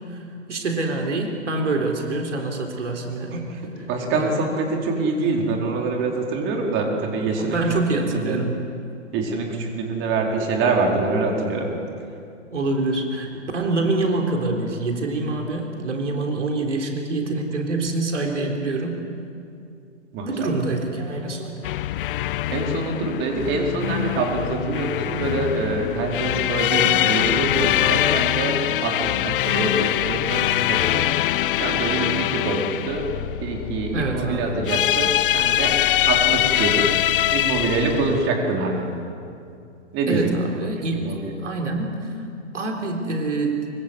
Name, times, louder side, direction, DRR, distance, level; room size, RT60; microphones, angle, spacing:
voice 1, 0.5-3.4 3.8-4.5 7.4-8.6 12.5-19.0 20.2-21.6 33.9-34.5 40.1-41.1 41.4-42.2 42.5-43.6, right 2 dB, 75° right, 2 dB, 3.9 m, -25 dB
voice 2, 3.9-7.6 8.0-8.4 9.1-11.7 20.1-20.6 22.5-31.1 31.6-33.1 33.4-35.8 36.1-37.0 37.3-38.9 39.9-40.3 40.6-41.3, right 3 dB, 30° right, 1 dB, 4.4 m, -25 dB
sound 1, 21.6-38.3, left 13 dB, 45° left, 0.7 m, -23 dB
25.0 x 24.5 x 8.2 m, 2.5 s
figure-of-eight pair, 110°, 37 cm